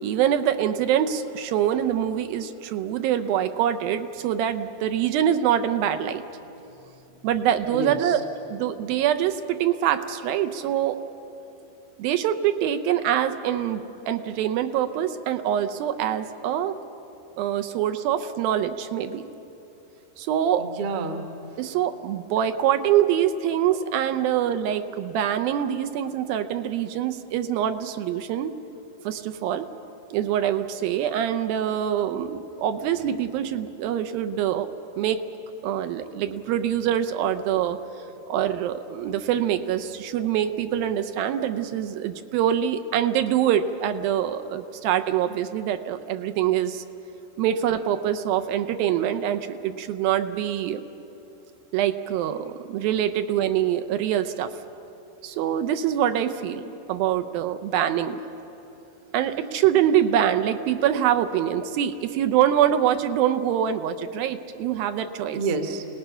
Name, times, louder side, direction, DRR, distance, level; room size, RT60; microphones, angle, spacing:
voice 1, 0.0-6.2 7.2-8.2 8.5-11.0 12.0-16.7 17.4-19.3 20.2-20.6 21.6-28.5 29.0-29.7 30.1-34.7 35.0-35.2 35.6-37.8 38.3-46.8 47.4-50.8 51.7-54.5 55.2-58.2 59.1-65.4, right 10 dB, 80° right, 8 dB, 2.4 m, -24 dB
voice 2, 7.7-8.2 20.6-21.6 65.3-65.9, right 3 dB, 55° right, 5 dB, 1.6 m, -29 dB
29.0 x 18.5 x 5.7 m, 3.0 s
omnidirectional pair, 4.3 m